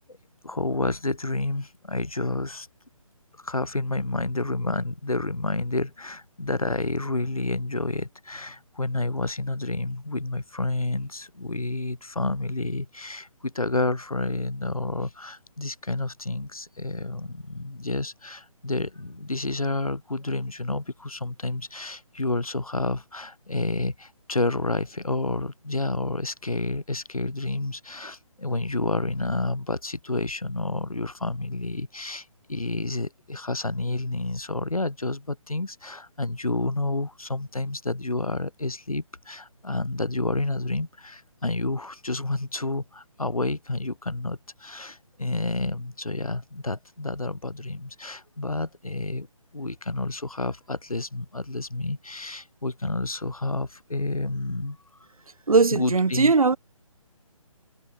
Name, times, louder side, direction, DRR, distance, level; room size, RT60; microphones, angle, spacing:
voice 1, 0.4-2.7 3.4-49.3 49.5-54.8 55.7-56.3, left 2 dB, 90° left, 1.8 m, -29 dB
voice 2, 55.5-56.6, right 4 dB, 85° right, 0.7 m, -19 dB
figure-of-eight pair, 145°, 18 cm